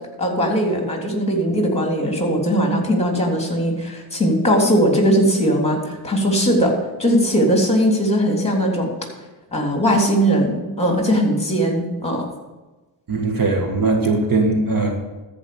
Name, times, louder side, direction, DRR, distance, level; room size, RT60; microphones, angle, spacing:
voice 1, 0.2-8.9 9.5-12.2, equal, 15° left, 1 dB, 3.2 m, -19 dB
voice 2, 13.1-15.0, right 3 dB, 45° right, 2 dB, 1.8 m, -19 dB
13.5 x 5.3 x 7.0 m, 1.2 s
cardioid pair, 70°, 47 cm